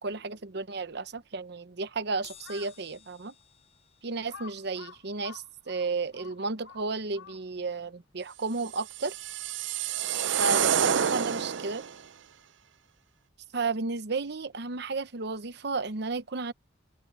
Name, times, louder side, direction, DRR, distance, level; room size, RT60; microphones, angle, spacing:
voice 1, 0.0-3.3 4.0-9.1 10.4-11.8 13.5-16.5, right 3 dB, 65° right, 0.9 m, -33 dB
Crash cymbal, 2.2-8.9 9.2-9.4 10.5-10.6, left 8 dB, 35° left, 5.9 m, -59 dB
Crow, 2.3-2.8 3.4-3.5 4.3-7.7, left 6 dB, 85° left, 1.6 m, -49 dB
sound 1, 8.7-11.9, right 8 dB, 85° right, 0.6 m, -28 dB
open air
head